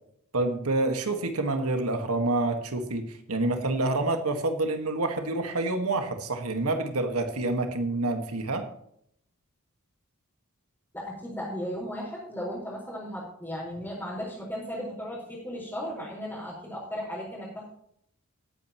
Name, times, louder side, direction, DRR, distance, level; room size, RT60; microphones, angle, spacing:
voice 1, 0.3-8.7, right 2 dB, 85° right, 6 dB, 1.6 m, -27 dB
voice 2, 10.9-17.7, equal, 10° left, -9 dB, 4.6 m, -36 dB
19.0 x 8.9 x 3.0 m, 0.70 s
head